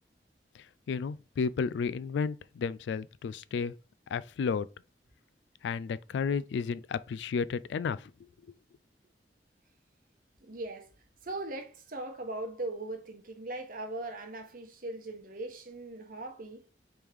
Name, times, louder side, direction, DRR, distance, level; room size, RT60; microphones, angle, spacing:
voice 1, 0.9-3.7 4.1-4.7 5.6-8.1 8.5-8.6, left 5 dB, 85° left, 0.3 m, -32 dB
voice 2, 10.4-10.9 11.2-16.6, right 2 dB, 50° right, 0.9 m, -39 dB
3.5 x 3.3 x 4.6 m
head